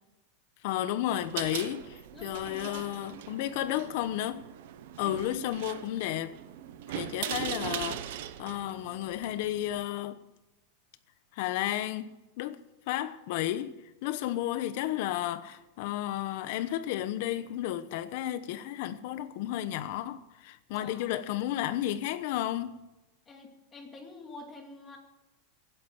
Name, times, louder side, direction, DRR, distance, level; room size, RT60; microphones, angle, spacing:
voice 1, 0.6-4.5 5.0-6.4 6.9-10.2 11.3-12.6 12.9-22.8, left 13 dB, 50° left, 1.0 m, -33 dB
sound 1, 1.1-9.8, right 12 dB, 60° right, 1.0 m, -40 dB
voice 2, 2.1-2.9 20.7-21.1 23.3-25.0, left 3 dB, 15° left, 2.3 m, -47 dB
16.0 x 10.0 x 7.2 m
supercardioid pair, 175°, 0 cm